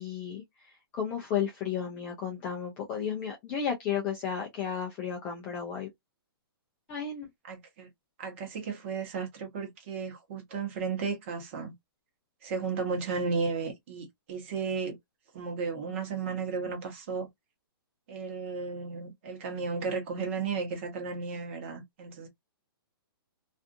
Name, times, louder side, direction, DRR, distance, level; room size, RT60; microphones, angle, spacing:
voice 1, 0.0-5.9 6.9-7.3, left 7 dB, 10° left, 0.3 m, -33 dB
voice 2, 7.5-7.9 8.2-11.7 12.4-15.0 15.3-17.3 18.1-22.3, right 5 dB, 30° right, 1.0 m, -34 dB
2.5 x 2.4 x 2.5 m
hypercardioid pair, 170°, 13 cm